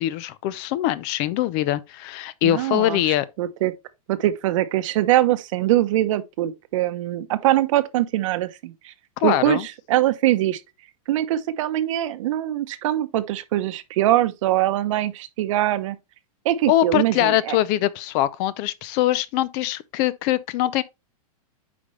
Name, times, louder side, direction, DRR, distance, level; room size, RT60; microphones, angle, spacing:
voice 1, 0.0-3.3 9.2-9.7 16.7-20.8, left 13 dB, 35° left, 0.5 m, -23 dB
voice 2, 2.4-3.7 4.1-8.9 9.2-10.6 11.1-16.0 16.4-17.6, right 14 dB, 55° right, 0.9 m, -22 dB
8.6 x 5.1 x 3.2 m
supercardioid pair, 155°, 19 cm